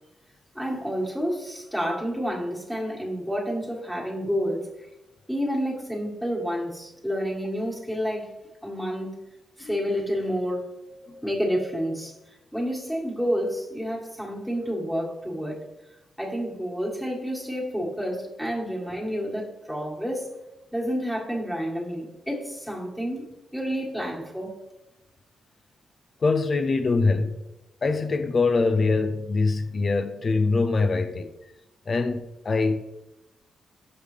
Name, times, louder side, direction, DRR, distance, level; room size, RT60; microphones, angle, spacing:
voice 1, 0.5-4.7 5.3-8.3 8.6-9.2 9.6-10.7 11.2-12.1 12.5-15.6 16.2-20.3 20.7-23.3 23.5-24.5, equal, ahead, 1.8 m, -29 dB
voice 2, 26.2-27.4 27.8-31.3 31.9-32.8, left 3 dB, 40° left, 0.5 m, -23 dB
6.6 x 5.3 x 3.3 m
cardioid pair, 80°, 0 cm